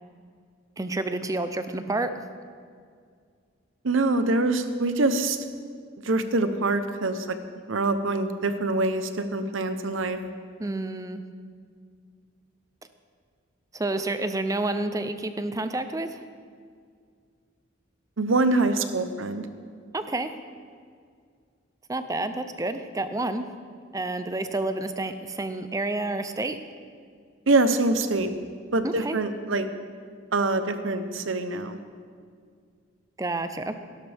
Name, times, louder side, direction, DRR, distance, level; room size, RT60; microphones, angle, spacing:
voice 1, 0.8-2.1 10.6-11.2 13.7-16.2 19.9-20.3 21.9-23.5 23.9-26.6 28.8-29.2 33.2-33.8, right 2 dB, 15° right, 9 dB, 0.5 m, -29 dB
voice 2, 3.8-5.4 6.0-7.4 7.7-10.2 18.2-19.5 27.5-28.3 28.7-29.7 30.3-31.8, right 2 dB, 85° right, 10 dB, 0.8 m, -24 dB
17.0 x 11.5 x 3.5 m, 2.1 s
head